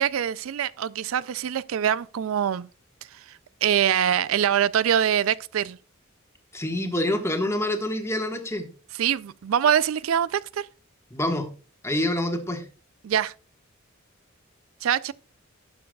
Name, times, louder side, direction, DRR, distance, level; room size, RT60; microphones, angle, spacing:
voice 1, 0.0-2.7 3.3-5.8 9.0-10.7 13.0-13.3 14.8-15.1, right 9 dB, 75° right, 0.4 m, -24 dB
voice 2, 6.5-8.7 11.1-11.5 11.8-12.7, left 1 dB, 15° left, 1.4 m, -26 dB
18.0 x 7.0 x 2.3 m
head